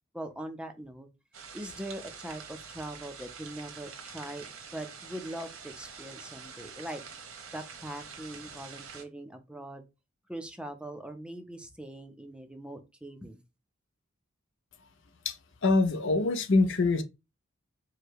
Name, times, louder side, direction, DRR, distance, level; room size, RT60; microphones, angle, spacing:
voice 1, 0.1-1.1 1.5-4.5 4.7-7.0 7.5-9.8 10.3-13.4, right 1 dB, 5° right, 0.5 m, -41 dB
sound 1, 1.3-9.0, right 6 dB, 80° right, 1.2 m, -46 dB
voice 2, 15.6-17.0, left 3 dB, 60° left, 0.6 m, -24 dB
4.8 x 2.2 x 4.6 m
head